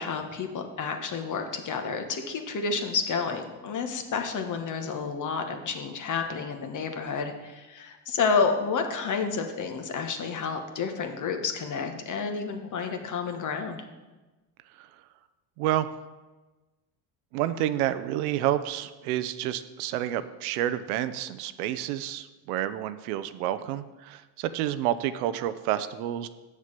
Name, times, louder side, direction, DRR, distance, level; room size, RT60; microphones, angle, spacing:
voice 1, 0.0-13.8, left 5 dB, 45° left, 5 dB, 1.4 m, -30 dB
voice 2, 15.6-15.9 17.3-26.3, right 12 dB, 90° right, 13 dB, 0.7 m, -29 dB
7.6 x 6.5 x 6.7 m, 1.2 s
supercardioid pair, 100°, 43 cm